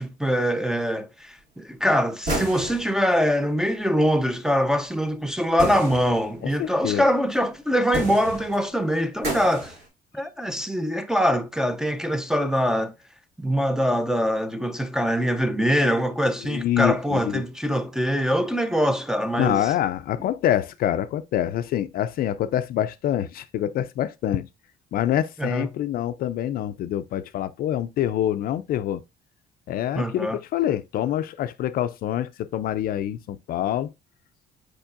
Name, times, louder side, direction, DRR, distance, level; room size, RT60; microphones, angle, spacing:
voice 1, 0.0-9.7 10.1-12.9 13.4-19.7 25.4-25.7 29.9-30.4, equal, 5° right, 0.5 m, -23 dB
sound 1, 2.2-3.0 5.6-6.3 7.3-7.4 7.9-8.6 9.2-9.8, right 1 dB, 70° right, 2.6 m, -30 dB
voice 2, 6.4-7.0 16.4-17.4 19.4-24.5 24.9-29.0 29.7-33.9, left 11 dB, 60° left, 0.4 m, -26 dB
4.8 x 4.4 x 2.5 m
cardioid pair, 90°, 17 cm